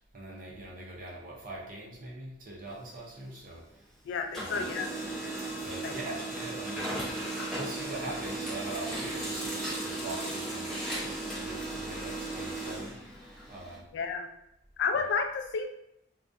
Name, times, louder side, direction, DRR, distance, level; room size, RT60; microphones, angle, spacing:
voice 1, 0.1-3.7 4.4-4.7 5.6-7.0 7.5-10.7 11.0-13.0 13.5-13.9 14.9-15.1, right 2 dB, 45° right, -3 dB, 0.5 m, -42 dB
Printer, 2.7-3.9 4.2-13.8, right 2 dB, 5° left, 0.7 m, -36 dB
voice 2, 4.1-5.0 5.8-6.0 13.9-14.3 14.8-15.6, left 5 dB, 65° left, 5 dB, 0.3 m, -31 dB
2.3 x 2.1 x 2.5 m, 0.77 s
head